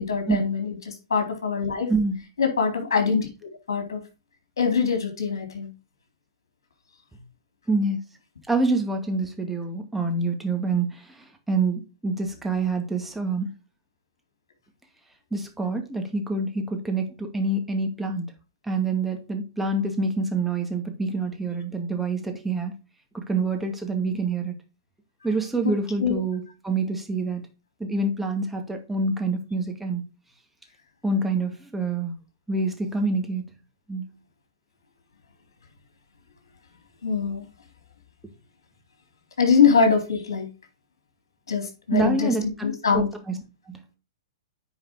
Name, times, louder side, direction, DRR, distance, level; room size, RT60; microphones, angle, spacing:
voice 1, 0.0-1.9 2.4-3.3 3.7-4.0 4.6-5.7 26.0-26.2 37.0-37.5 39.4-40.5 41.5-42.3 42.6-43.1, left 6 dB, 80° left, 3.7 m, -23 dB
voice 2, 1.9-2.2 7.7-8.0 8.5-13.5 15.3-18.3 18.6-22.7 23.1-24.6 25.2-27.4 27.8-30.0 31.0-32.1 32.5-33.5 33.9-34.1 41.9-42.7 42.9-43.8, right 3 dB, 5° right, 2.0 m, -26 dB
9.6 x 4.8 x 4.9 m
hypercardioid pair, 120°, 2 cm